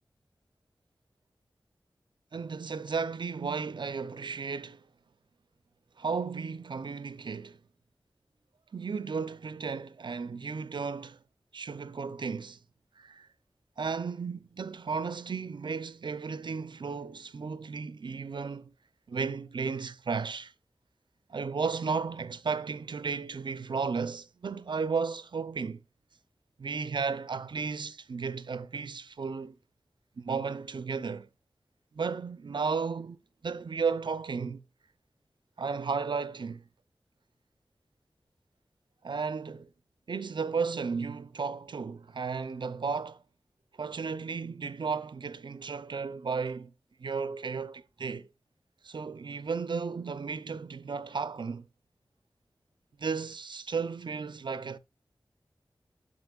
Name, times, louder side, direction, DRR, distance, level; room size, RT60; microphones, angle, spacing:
voice 1, 2.3-4.8 6.0-7.6 8.7-11.2 11.5-12.6 13.0-13.3 13.8-18.7 19.1-20.5 21.3-25.8 26.6-29.5 30.2-31.3 31.9-34.6 35.6-36.6 39.0-39.7 40.1-43.2 43.8-46.7 47.0-48.3 48.8-51.6 53.0-54.8, right 5 dB, 70° right, 0.6 m, -34 dB
9.7 x 7.4 x 2.3 m
wide cardioid pair, 80°, 8 cm